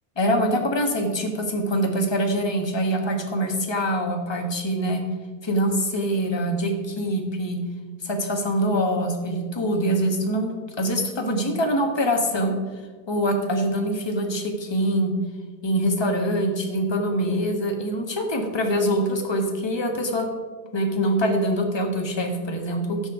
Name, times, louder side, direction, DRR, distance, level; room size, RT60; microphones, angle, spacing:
voice 1, 0.2-5.0 5.4-7.6 8.0-12.5 13.1-15.1 15.6-20.3 20.7-23.1, equal, 15° left, 2 dB, 1.3 m, -24 dB
16.5 x 6.3 x 4.9 m, 1.4 s
omnidirectional pair, 2.0 m